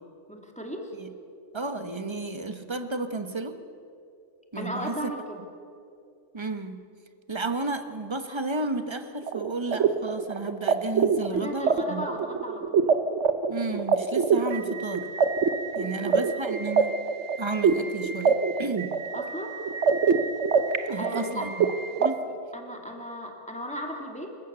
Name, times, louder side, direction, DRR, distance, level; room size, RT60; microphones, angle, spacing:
voice 1, 0.3-0.9 4.5-5.4 11.4-12.9 15.8-16.2 19.1-19.6 21.0-21.5 21.9-24.4, equal, 5° left, 1 dB, 2.5 m, -36 dB
voice 2, 1.5-3.6 4.5-5.1 6.3-6.8 7.3-12.0 13.5-15.1 15.7-16.9 17.4-18.9 20.9-21.7 22.0-22.1, right 3 dB, 25° right, 8 dB, 1.1 m, -32 dB
sound 1, 9.3-22.1, right 5 dB, 75° right, 1.3 m, -25 dB
28.0 x 15.5 x 6.9 m, 2.5 s
omnidirectional pair, 1.2 m